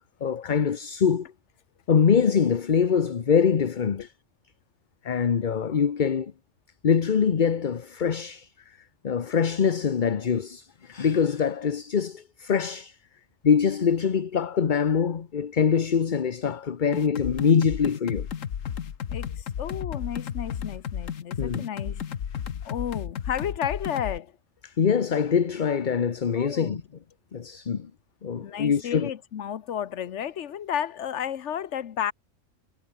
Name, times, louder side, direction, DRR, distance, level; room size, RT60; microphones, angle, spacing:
voice 1, 0.2-1.3 1.9-4.1 5.0-6.3 6.8-8.8 9.0-13.0 13.4-18.3 21.4-21.6 24.6-26.8 27.3-27.9 28.2-29.1, left 7 dB, 40° left, 1.0 m, -24 dB
sound 1, 16.9-24.2, left 8 dB, 90° left, 1.5 m, -33 dB
voice 2, 19.1-22.1 22.6-24.4 26.3-26.8 27.3-27.4 28.4-32.1, left 9 dB, 65° left, 1.2 m, -32 dB
omnidirectional pair, 1.3 m